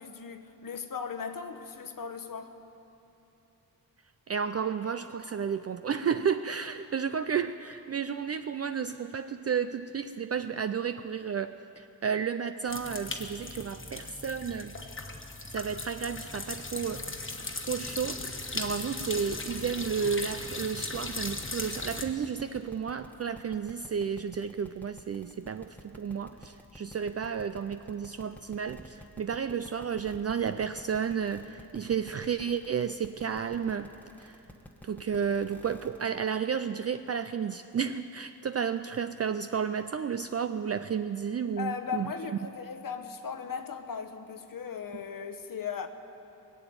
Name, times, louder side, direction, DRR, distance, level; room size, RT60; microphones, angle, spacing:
voice 1, 0.0-2.5 41.6-45.9, left 6 dB, 60° left, 6 dB, 1.0 m, -37 dB
voice 2, 4.3-14.8 15.5-17.3 17.7-33.9 34.2-34.4 34.8-42.1, right 7 dB, 40° right, 10 dB, 0.4 m, -32 dB
sound 1, 12.7-22.0, left 3 dB, 30° left, 1.3 m, -38 dB
sound 2, 16.6-36.1, equal, 5° left, 1.1 m, -50 dB
20.5 x 7.0 x 9.2 m, 3.0 s
cardioid pair, 75°, 38 cm